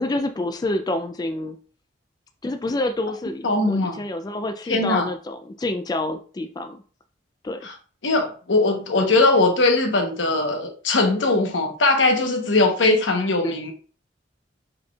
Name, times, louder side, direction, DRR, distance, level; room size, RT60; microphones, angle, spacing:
voice 1, 0.0-1.6 2.4-6.8 7.4-7.7 13.4-13.5, left 2 dB, 20° left, 0.3 m, -28 dB
voice 2, 3.4-4.0 4.7-5.1 7.6-7.7 8.0-13.7, left 2 dB, 90° left, 1.0 m, -20 dB
5.2 x 4.2 x 2.3 m
head